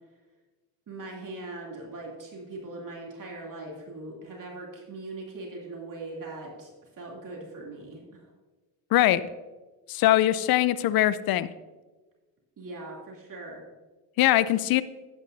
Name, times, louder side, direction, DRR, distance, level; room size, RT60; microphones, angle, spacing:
voice 1, 0.9-6.7 7.0-8.3 12.6-13.6, right 2 dB, 45° right, -2 dB, 2.9 m, -40 dB
voice 2, 9.9-11.5 14.2-14.8, left 14 dB, 55° left, 16 dB, 0.6 m, -22 dB
11.5 x 9.4 x 2.7 m, 1.2 s
supercardioid pair, 75°, 44 cm